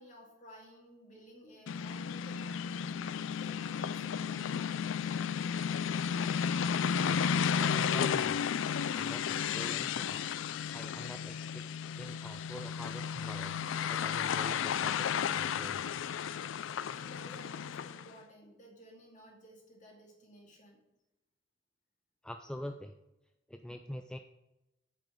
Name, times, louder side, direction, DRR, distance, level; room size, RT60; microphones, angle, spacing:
voice 1, 0.0-5.3 16.8-20.8, equal, 40° left, -1 dB, 2.4 m, -55 dB
sound 1, 1.7-18.1, left 7 dB, 75° left, 0.3 m, -33 dB
voice 2, 6.9-7.2 7.6-8.4 8.9-10.2 10.7-13.6 13.9-15.9 22.2-22.9 23.5-24.2, equal, 5° left, 5 dB, 0.3 m, -45 dB
8.9 x 5.0 x 6.2 m, 0.94 s
head